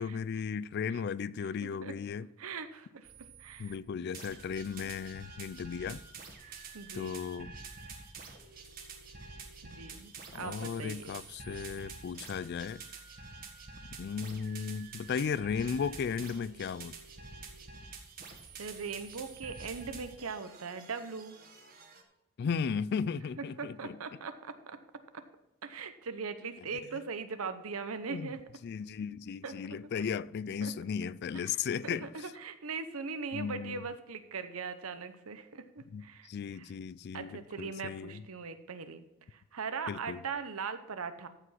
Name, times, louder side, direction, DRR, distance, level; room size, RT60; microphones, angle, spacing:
voice 1, 0.0-2.3 3.6-6.0 6.9-7.5 10.3-12.8 14.0-16.9 22.4-24.0 28.1-28.4 28.6-32.3 33.3-33.9 35.9-38.2 39.9-40.2, left 6 dB, 50° left, 0.3 m, -36 dB
voice 2, 1.4-1.9 2.4-3.7 4.8-4.9 6.4-7.3 9.6-11.1 18.6-21.4 23.4-24.5 25.1-25.2 25.6-28.4 29.4-29.5 30.6-30.7 31.3-36.7 37.1-39.0 39.3-41.3, right 5 dB, 75° right, 0.8 m, -40 dB
sound 1, 3.0-3.8 4.1-22.0, right 4 dB, 40° right, 1.5 m, -48 dB
14.5 x 5.1 x 5.6 m
head